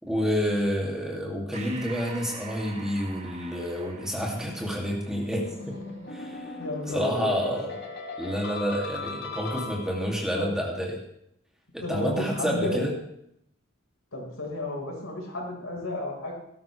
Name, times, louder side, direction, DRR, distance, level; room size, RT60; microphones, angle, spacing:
voice 1, 0.0-5.8 6.1-6.5 6.9-7.7 8.2-10.9 11.7-12.9, equal, 5° right, -2 dB, 2.5 m, -29 dB
Breathing, 1.5-6.4, right 4 dB, 30° right, 1.7 m, -45 dB
sound 1, 5.3-10.2, left 3 dB, 55° left, 2.2 m, -38 dB
voice 2, 6.6-7.3 10.3-10.5 11.8-12.8 14.1-16.3, left 1 dB, 90° left, -1 dB, 4.7 m, -32 dB
19.0 x 12.0 x 3.3 m, 0.74 s
head